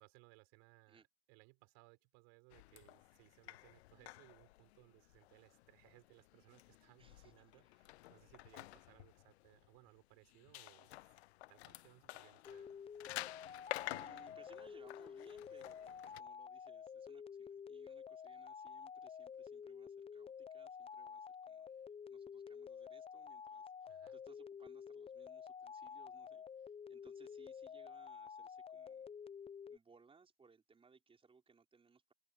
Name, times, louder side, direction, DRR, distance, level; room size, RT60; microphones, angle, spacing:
voice 1, 0.0-11.1 11.5-12.7 23.9-24.2, right 40 dB or more, 45° right, 6.4 m, -65 dB
sound 1, 2.5-16.2, left 18 dB, 55° left, 1.1 m, -51 dB
voice 2, 7.0-7.3 7.6-7.7 8.7-8.8 13.8-29.1 29.7-32.1, right 5 dB, 15° right, 4.9 m, -67 dB
sound 2, 12.4-29.8, left 7 dB, 15° left, 1.1 m, -50 dB
open air
figure-of-eight pair, 95°, 39 cm